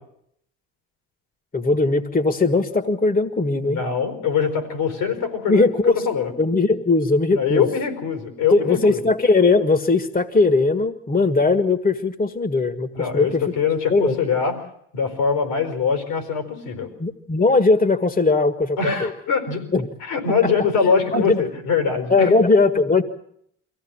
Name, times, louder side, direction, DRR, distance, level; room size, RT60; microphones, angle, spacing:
voice 1, 1.5-3.8 5.5-5.9 6.4-7.7 8.5-13.4 13.9-14.1 17.0-19.1 19.7-19.9 21.1-21.4 22.1-23.0, left 3 dB, 25° left, 10 dB, 1.7 m, -19 dB
voice 2, 3.6-5.7 6.1-6.3 7.3-9.0 12.9-14.6 14.9-16.9 18.8-19.6 20.0-22.3, left 6 dB, 75° left, 7 dB, 4.4 m, -23 dB
24.0 x 16.0 x 8.8 m, 0.71 s
hypercardioid pair, 50°, 36 cm